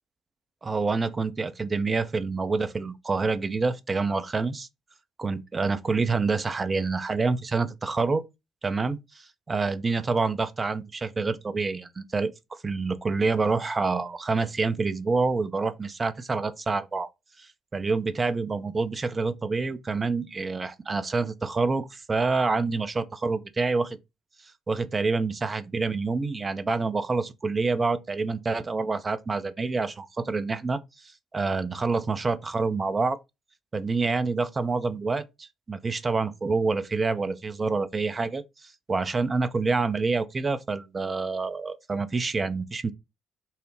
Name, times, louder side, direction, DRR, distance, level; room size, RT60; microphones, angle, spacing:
voice 1, 0.6-4.7 5.2-8.2 8.6-17.1 17.4-24.0 24.7-30.8 31.3-33.2 33.7-38.4 38.9-42.9, right 4 dB, 30° right, 0.5 m, -27 dB
5.4 x 2.0 x 3.1 m
figure-of-eight pair, 50°, 0 cm